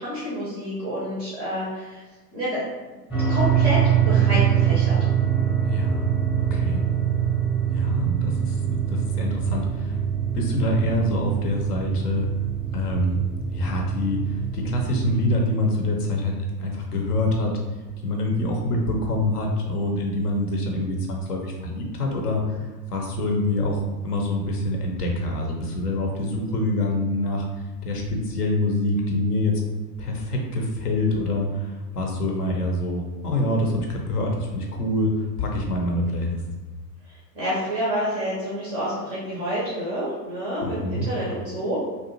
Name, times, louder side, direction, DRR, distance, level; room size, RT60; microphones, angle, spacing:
voice 1, 0.0-2.0 2.3-2.9 3.3-5.0 37.1-41.8, equal, 10° right, -8 dB, 0.4 m, -28 dB
sound 1, 3.1-15.4, right 8 dB, 10° left, 0.7 m, -24 dB
voice 2, 5.6-6.1 6.5-6.8 7.7-10.0 10.3-12.3 12.7-13.2 13.5-17.5 18.0-27.5 27.8-29.6 30.0-35.1 35.4-36.4 40.6-41.0, left 1 dB, 65° left, 1 dB, 0.7 m, -25 dB
2.5 x 2.2 x 2.9 m, 1.2 s
figure-of-eight pair, 95°, 49 cm